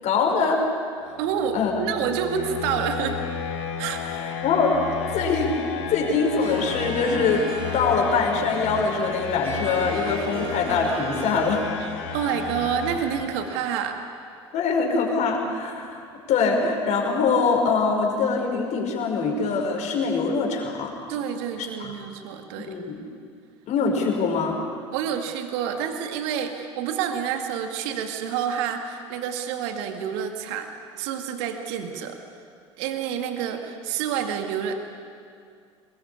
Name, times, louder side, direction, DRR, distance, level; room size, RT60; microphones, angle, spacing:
voice 1, 0.0-0.7 1.0-1.2 1.5-1.7 4.0-4.8 5.1-5.5 5.9-11.7 14.5-20.9 21.6-21.9 22.6-23.0 23.7-24.6, left 4 dB, 50° left, 1 dB, 5.4 m, -23 dB
sound 1, 1.1-13.9, left 6 dB, 70° left, 2.5 m, -33 dB
voice 2, 1.2-3.2 3.8-4.0 11.8-14.0 21.1-22.8 24.9-30.7 31.0-32.2 32.8-34.7, right 8 dB, 65° right, 5 dB, 2.1 m, -28 dB
Harp, 6.4-11.9, right 2 dB, 40° right, 5.0 m, -35 dB
23.5 x 21.0 x 8.7 m, 2.3 s
hypercardioid pair, 70°, 15 cm